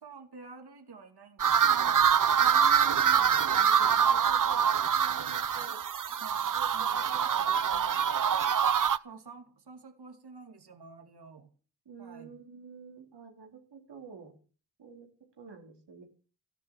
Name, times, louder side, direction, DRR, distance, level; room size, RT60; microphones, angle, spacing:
voice 1, 0.0-2.1 6.2-7.1 9.0-11.5 12.0-12.3, right 4 dB, 70° right, 5 dB, 2.9 m, -49 dB
sound 1, 1.4-9.0, right 8 dB, 50° right, 0.7 m, -25 dB
voice 2, 2.3-4.7 5.0-5.8 6.5-8.4 11.9-14.3 14.8-15.1 15.4-16.0, right 6 dB, 85° right, 2 dB, 3.5 m, -49 dB
14.0 x 10.5 x 7.3 m, 0.39 s
cardioid pair, 55°, 41 cm